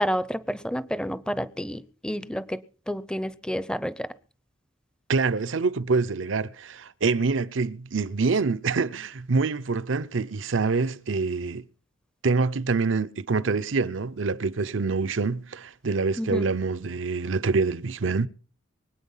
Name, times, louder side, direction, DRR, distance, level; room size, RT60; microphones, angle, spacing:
voice 1, 0.0-2.6 2.9-4.1 16.2-16.4, equal, 5° left, 0.6 m, -29 dB
voice 2, 5.1-11.7 12.2-18.3, right 4 dB, 75° right, 0.7 m, -26 dB
23.5 x 9.0 x 5.6 m
head